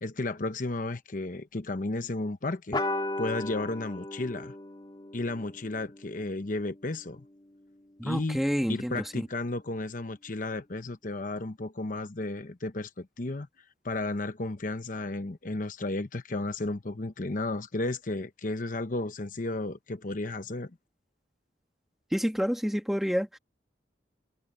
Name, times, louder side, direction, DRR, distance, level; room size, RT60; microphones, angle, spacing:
voice 1, 0.0-2.8 3.2-4.5 5.1-7.2 8.0-8.4 8.7-13.5 13.8-20.8, left 2 dB, 45° left, 0.9 m, -33 dB
sound 1, 2.7-7.6, left 2 dB, 25° left, 2.3 m, -37 dB
voice 2, 8.0-9.3 22.1-23.4, equal, ahead, 1.7 m, -29 dB
head